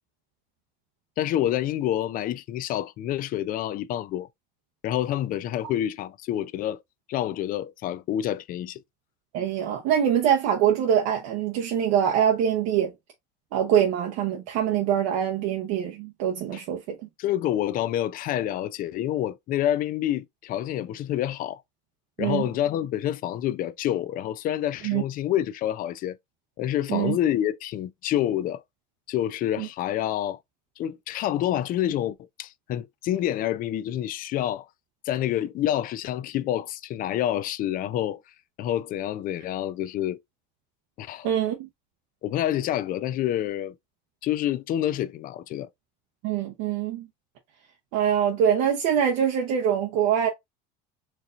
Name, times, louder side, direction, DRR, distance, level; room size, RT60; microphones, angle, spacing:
voice 1, 1.2-4.3 4.8-6.8 7.1-8.8 16.5-16.6 17.2-21.6 22.2-26.2 26.6-28.6 29.1-30.4 30.8-34.7 35.1-38.2 38.6-40.2 41.0-41.3 42.2-43.7 44.2-45.7, left 12 dB, 40° left, 0.4 m, -27 dB
voice 2, 9.3-12.9 13.5-17.0 22.2-22.4 24.8-25.0 26.9-27.2 29.6-29.7 41.2-41.7 46.2-47.1 47.9-50.3, right 9 dB, 75° right, 0.9 m, -24 dB
4.5 x 2.7 x 2.4 m
cardioid pair, 135°, 21 cm